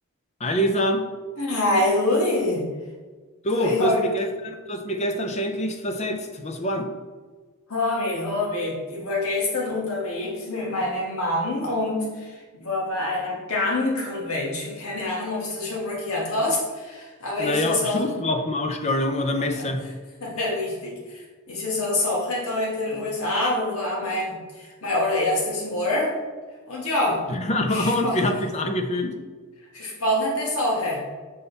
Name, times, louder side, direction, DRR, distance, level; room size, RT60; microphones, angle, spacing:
voice 1, 0.4-1.0 3.4-6.9 17.4-19.8 27.3-29.1, left 1 dB, 30° left, 6 dB, 0.6 m, -25 dB
voice 2, 1.4-2.6 3.5-4.1 7.7-18.1 19.4-19.7 20.2-26.2 26.7-27.2 27.7-28.2 29.7-31.0, left 2 dB, 80° left, -3 dB, 1.7 m, -26 dB
6.8 x 3.8 x 4.0 m, 1.4 s
head